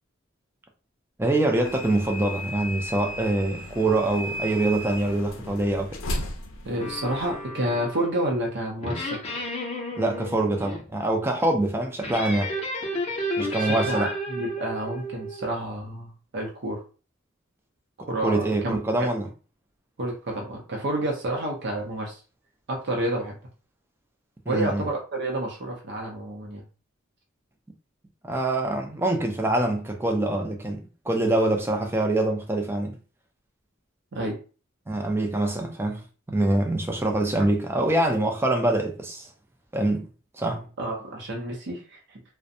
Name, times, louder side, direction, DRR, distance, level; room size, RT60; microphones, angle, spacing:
voice 1, 1.2-5.9 10.0-12.5 13.4-14.1 18.2-19.3 24.5-24.9 28.2-33.0 34.9-39.3 39.7-40.1 40.3-40.7, right 2 dB, 10° right, 0.4 m, -25 dB
sound 1, 1.6-7.5, left 1 dB, 80° left, 0.5 m, -35 dB
voice 2, 6.6-9.2 13.6-16.8 18.0-19.1 20.0-22.2 22.7-23.3 24.5-26.6 34.1-34.4 40.8-42.2, right 1 dB, 55° right, 0.6 m, -29 dB
sound 2, 6.8-8.2 8.8-10.8 12.0-15.5, equal, 30° left, 0.6 m, -32 dB
2.5 x 2.1 x 2.6 m
head